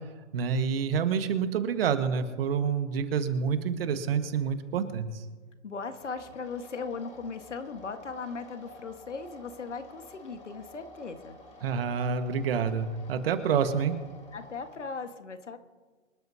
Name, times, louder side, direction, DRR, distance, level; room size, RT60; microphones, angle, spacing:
voice 1, 0.3-5.2 11.6-14.0, right 6 dB, 55° right, 9 dB, 1.6 m, -28 dB
voice 2, 5.6-11.4 14.3-15.6, left 4 dB, 80° left, 8 dB, 1.7 m, -38 dB
sound 1, 6.0-14.9, left 1 dB, 20° left, 3.9 m, -50 dB
25.5 x 12.0 x 2.9 m, 1.4 s
hypercardioid pair, 130°, 35 cm